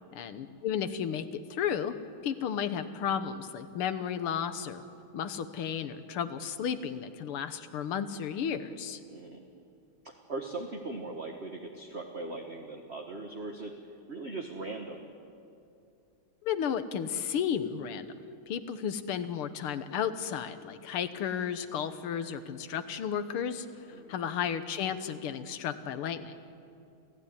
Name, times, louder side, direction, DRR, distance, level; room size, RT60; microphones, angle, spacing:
voice 1, 0.1-2.0 2.2-4.8 5.1-9.0 16.4-18.2 18.5-23.7 24.1-26.4, left 8 dB, 80° left, 11 dB, 2.0 m, -33 dB
voice 2, 9.1-9.4 10.0-13.7 14.1-15.1 23.9-24.2, right 3 dB, 35° right, 2 dB, 1.6 m, -39 dB
28.0 x 16.0 x 9.9 m, 2.6 s
omnidirectional pair, 2.4 m